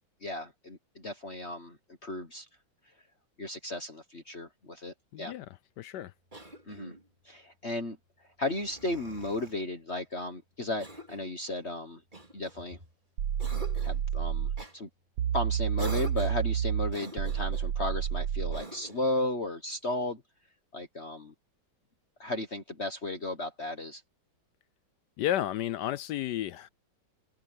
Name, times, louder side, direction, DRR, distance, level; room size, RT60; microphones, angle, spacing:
voice 1, 0.2-2.5 3.4-5.3 6.7-7.0 7.2-8.0 8.4-12.0 12.3-12.8 13.8-14.9 15.3-20.2 20.7-21.3 22.2-24.0, left 2 dB, 35° left, 1.5 m, -35 dB
voice 2, 5.1-6.1 25.2-26.7, left 12 dB, 75° left, 1.0 m, -32 dB
Cough, 6.3-7.1 8.4-9.6 10.8-11.3 12.1-12.9 13.4-14.0 14.6-14.8 15.8-16.5 16.9-17.7 18.5-19.1, right 1 dB, 20° right, 3.8 m, -45 dB
sound 1, 13.2-14.6 15.2-18.6, right 9 dB, 75° right, 1.7 m, -30 dB
open air
omnidirectional pair, 2.2 m